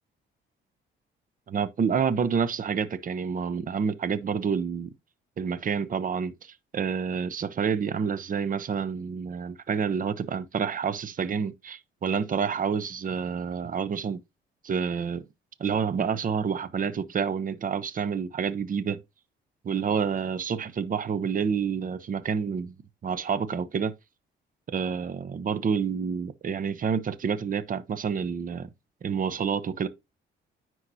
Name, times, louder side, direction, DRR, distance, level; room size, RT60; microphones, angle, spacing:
voice 1, 1.5-4.9 5.4-14.2 14.6-15.2 15.6-19.0 19.6-22.7 23.0-23.9 24.7-28.7 29.0-29.9, right 6 dB, 45° right, 0.8 m, -28 dB
9.7 x 4.6 x 2.7 m
cardioid pair, 90°, 20 cm